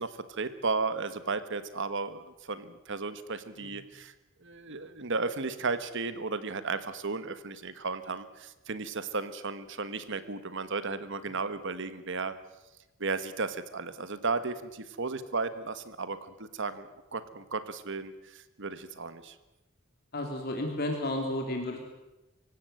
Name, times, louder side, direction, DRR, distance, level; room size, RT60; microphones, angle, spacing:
voice 1, 0.0-4.1 4.4-12.3 13.0-19.3, right 4 dB, 60° right, 12 dB, 1.5 m, -34 dB
voice 2, 20.1-21.8, left 1 dB, 50° left, 2 dB, 3.1 m, -32 dB
25.5 x 16.0 x 9.2 m, 1.0 s
head